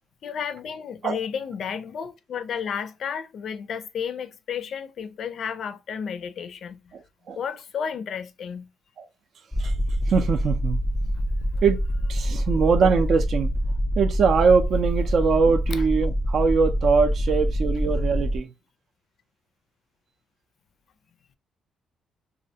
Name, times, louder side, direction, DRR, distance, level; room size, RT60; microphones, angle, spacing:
voice 1, 0.2-6.8 7.4-8.7 11.0-11.2 12.3-12.4 15.7-15.9, left 7 dB, 60° left, 0.4 m, -32 dB
sound 1, 9.5-18.4, equal, 5° left, 0.5 m, -25 dB
voice 2, 10.1-10.8 11.6-11.8 12.1-13.5 14.0-18.5, right 5 dB, 60° right, 0.4 m, -22 dB
2.4 x 2.1 x 2.7 m
cardioid pair, 90°, 0 cm